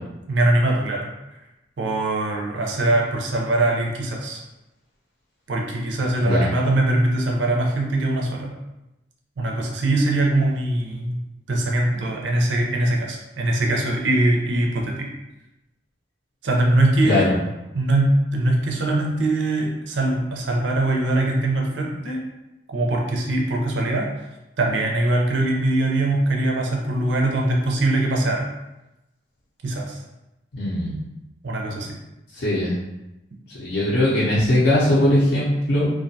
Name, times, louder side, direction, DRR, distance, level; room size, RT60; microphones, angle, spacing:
voice 1, 0.3-1.1 1.8-4.4 5.5-8.5 9.4-11.2 11.5-15.1 16.4-17.3 17.7-22.2 22.7-24.1 24.6-28.5 29.6-30.0 31.4-32.0, right 1 dB, 65° right, 0 dB, 0.5 m, -22 dB
voice 2, 17.0-17.4 30.5-31.0 32.3-32.8 33.5-35.9, left 1 dB, 60° left, -8 dB, 0.5 m, -20 dB
2.4 x 2.2 x 2.6 m, 0.97 s
head